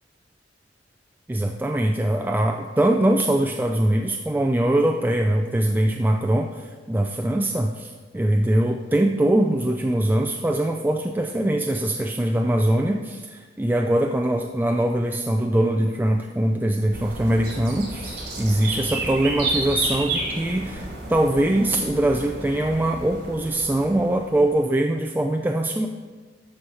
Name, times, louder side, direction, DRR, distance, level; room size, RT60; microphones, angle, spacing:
voice 1, 1.3-25.9, right 1 dB, 10° right, 3 dB, 0.3 m, -22 dB
sound 1, 16.9-24.5, right 2 dB, 60° right, 2.9 m, -31 dB
13.0 x 4.7 x 5.5 m, 1.4 s
head